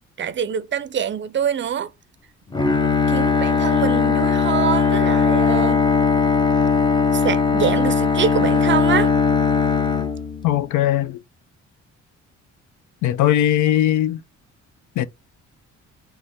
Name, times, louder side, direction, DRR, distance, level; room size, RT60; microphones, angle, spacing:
voice 1, 0.2-1.9 2.8-5.9 7.1-9.1, right 8 dB, 40° right, 0.5 m, -25 dB
Bowed string instrument, 2.5-10.8, left 5 dB, 15° left, 0.6 m, -19 dB
voice 2, 10.4-11.2 13.0-14.2 15.0-15.1, left 12 dB, 75° left, 0.5 m, -19 dB
3.5 x 3.3 x 4.0 m
cardioid pair, 90°, 30 cm